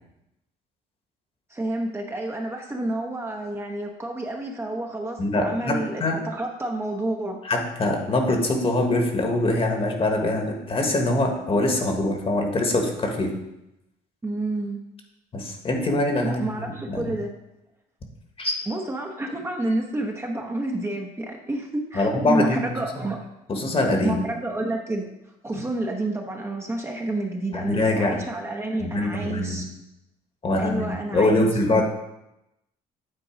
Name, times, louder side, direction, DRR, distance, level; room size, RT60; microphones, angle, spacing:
voice 1, 1.5-7.4 14.2-14.8 16.2-17.3 18.7-23.2 24.0-25.1 25.4-29.6 30.6-31.8, right 2 dB, 15° right, 1 dB, 0.8 m, -29 dB
voice 2, 5.2-6.2 7.4-13.3 15.3-17.1 18.4-18.6 21.9-22.6 23.0-23.1 23.5-24.2 25.5-25.6 27.5-28.2 28.8-29.6 30.4-30.9 31.1-31.8, left 2 dB, 35° left, 3 dB, 1.4 m, -23 dB
8.9 x 3.8 x 5.0 m, 0.88 s
cardioid pair, 110°, 17 cm